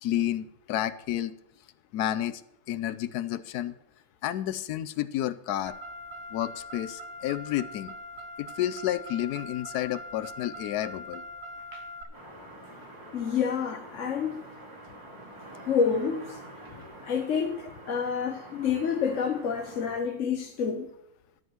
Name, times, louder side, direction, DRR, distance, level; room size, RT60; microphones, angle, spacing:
voice 1, 0.0-1.3 1.9-2.4 2.7-3.8 4.2-5.7 6.3-7.9 8.4-11.2, left 12 dB, 80° left, 1.1 m, -30 dB
Car, 5.7-12.0, left 1 dB, 90° right, 1.8 m, -42 dB
sound 1, 12.1-20.0, right 1 dB, 15° right, 2.7 m, -47 dB
voice 2, 13.1-14.4 15.7-16.4 16.8-20.9, left 6 dB, 55° left, 1.1 m, -28 dB
12.5 x 5.4 x 7.2 m
omnidirectional pair, 1.7 m